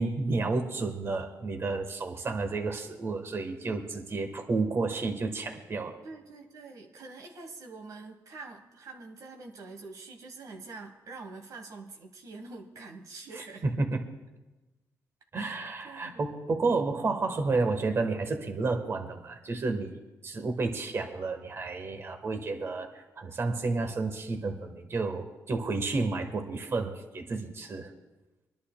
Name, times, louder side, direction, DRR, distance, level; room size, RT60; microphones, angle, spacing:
voice 1, 0.0-6.0 13.6-14.0 15.3-27.9, right 3 dB, 40° right, 5 dB, 1.2 m, -31 dB
voice 2, 6.0-13.6 15.3-16.2, right 3 dB, 60° right, 3 dB, 1.2 m, -45 dB
26.0 x 11.0 x 2.2 m, 1.1 s
cardioid pair, 110°, 7 cm